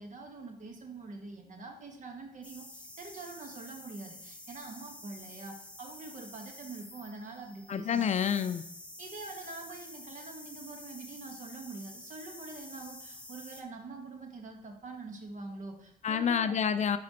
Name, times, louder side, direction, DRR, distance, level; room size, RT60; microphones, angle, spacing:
voice 1, 0.0-8.2 9.0-16.5, right 3 dB, 55° right, 2 dB, 1.3 m, -45 dB
sound 1, 2.4-13.6, left 1 dB, 10° left, 0.6 m, -49 dB
voice 2, 7.7-8.6 16.0-17.0, left 7 dB, 50° left, 11 dB, 0.4 m, -28 dB
9.3 x 4.2 x 2.9 m, 0.75 s
cardioid pair, 110°, 16 cm